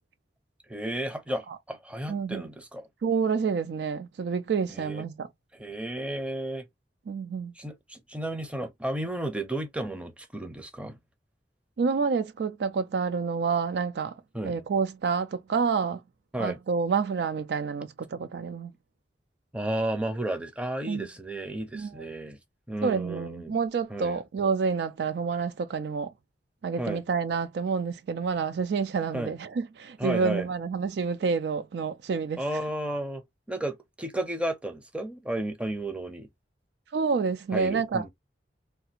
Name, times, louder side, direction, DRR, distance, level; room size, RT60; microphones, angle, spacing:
voice 1, 0.7-2.9 4.7-5.1 5.5-6.7 7.6-11.0 14.3-14.6 16.3-16.6 19.5-22.4 22.7-23.5 23.9-24.2 26.8-27.0 29.1-29.3 30.0-30.5 32.4-33.2 33.5-36.3 37.5-38.1, right 1 dB, 5° right, 0.6 m, -33 dB
voice 2, 2.1-2.4 3.0-5.3 7.1-7.5 11.8-14.2 14.4-16.0 16.4-18.7 20.9-21.1 21.7-21.9 22.8-26.1 26.6-32.4 36.9-38.1, right 5 dB, 65° right, 0.4 m, -28 dB
3.4 x 2.4 x 2.8 m
head